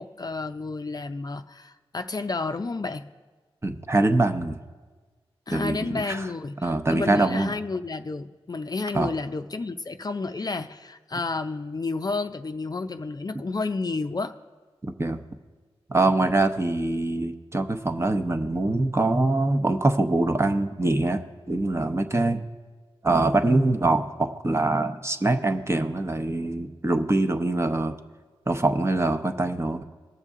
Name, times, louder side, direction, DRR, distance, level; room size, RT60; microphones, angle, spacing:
voice 1, 0.0-3.1 5.5-14.3, left 3 dB, 40° left, 8 dB, 0.5 m, -31 dB
voice 2, 3.6-4.6 5.5-6.3 6.6-7.5 8.9-9.1 15.0-15.2 15.9-22.4 23.0-28.0 28.5-29.8, right 2 dB, 25° right, 6 dB, 0.8 m, -24 dB
19.5 x 6.6 x 3.7 m, 1.4 s
cardioid pair, 45°, 10 cm